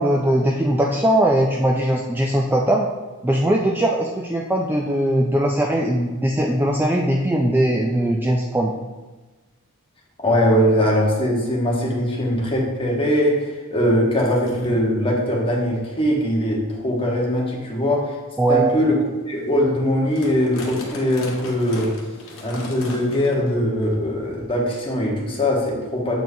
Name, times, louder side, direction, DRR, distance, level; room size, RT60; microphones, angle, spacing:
voice 1, 0.0-2.9 3.2-8.7 18.4-18.8, right 1 dB, 10° right, 0 dB, 0.3 m, -20 dB
voice 2, 10.2-18.1 18.5-19.0 19.2-21.9 22.4-26.2, equal, 25° left, -2 dB, 1.1 m, -21 dB
sound 1, 10.3-10.4 10.8-11.0 11.6-11.7 12.0-12.3 13.4-13.5 14.1-14.7 15.5-15.6 16.2-16.4 17.0-17.1 17.8-18.0 18.5-18.7 19.1-19.2 19.3-19.6 19.9-23.6 23.8-24.0 24.8-24.9, left 1 dB, 60° left, 1.2 m, -38 dB
7.7 x 4.5 x 2.7 m, 1.2 s
head